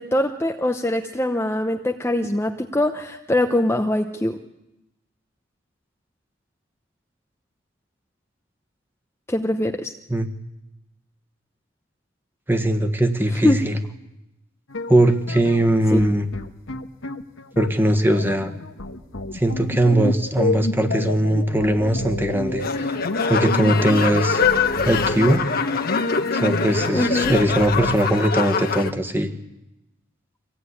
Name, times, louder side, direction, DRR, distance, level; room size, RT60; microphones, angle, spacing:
voice 1, 0.0-4.4 9.3-9.9 13.3-13.6 15.9-16.0 26.9-27.4, left 1 dB, 15° left, 4 dB, 0.9 m, -22 dB
voice 2, 12.5-13.8 14.9-16.3 17.6-18.5 19.3-23.0 23.3-24.4 24.8-25.4 26.3-29.3, right 1 dB, 10° right, 8 dB, 1.6 m, -20 dB
sound 1, 14.7-28.0, left 2 dB, 80° left, 1.5 m, -30 dB
sound 2, 22.6-28.9, left 5 dB, 45° left, 1.3 m, -24 dB
25.0 x 17.0 x 9.8 m, 0.92 s
head